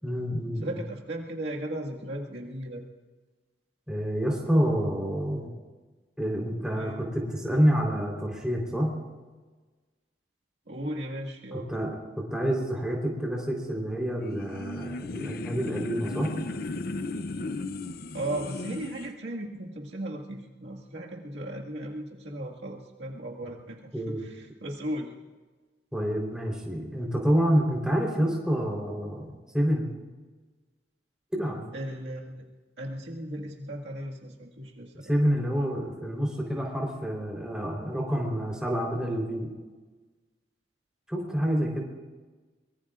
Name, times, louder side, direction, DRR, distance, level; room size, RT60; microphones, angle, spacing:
voice 1, 0.0-0.8 3.9-5.5 6.2-8.9 11.7-16.3 23.9-24.2 25.9-29.3 29.5-30.0 31.3-31.6 35.0-39.5 41.1-41.8, equal, 5° right, -1 dB, 3.8 m, -28 dB
voice 2, 0.6-2.8 6.7-7.0 10.7-11.8 18.1-25.1 31.7-32.5 32.8-35.1, right 1 dB, 75° right, -2 dB, 1.9 m, -36 dB
sound 1, 14.2-19.1, left 2 dB, 55° left, 0.6 m, -35 dB
23.5 x 22.5 x 2.5 m, 1.3 s
head